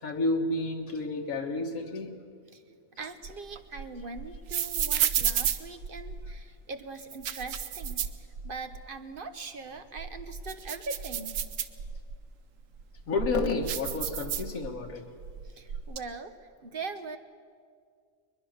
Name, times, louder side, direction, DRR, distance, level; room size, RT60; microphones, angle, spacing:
voice 1, 0.0-2.1 13.1-15.0, left 3 dB, 85° left, 2 dB, 1.9 m, -30 dB
voice 2, 3.0-8.1 8.4-11.3 15.4-16.3 16.6-17.2, right 4 dB, 45° right, 9 dB, 1.1 m, -41 dB
sound 1, 3.0-6.4 7.0-8.8 9.2-9.3 9.8-12.2 12.7-14.9 15.2-16.0, right 8 dB, 75° right, 1.2 m, -32 dB
22.0 x 21.5 x 6.5 m, 2.1 s
omnidirectional pair, 1.4 m